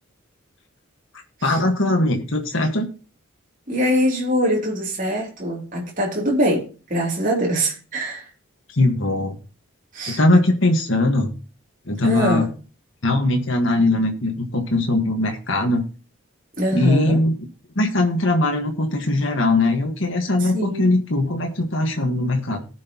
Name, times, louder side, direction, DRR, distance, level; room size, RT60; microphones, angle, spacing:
voice 1, 1.4-2.9 8.7-9.4 10.1-11.3 11.9-12.5 13.0-15.8 16.7-17.3 17.7-22.7, left 2 dB, 65° left, 2 dB, 1.6 m, -20 dB
voice 2, 3.7-8.2 9.9-10.2 12.0-12.5 16.6-17.2 20.4-20.8, equal, 40° right, -2 dB, 3.2 m, -23 dB
19.0 x 6.3 x 3.0 m, 0.36 s
head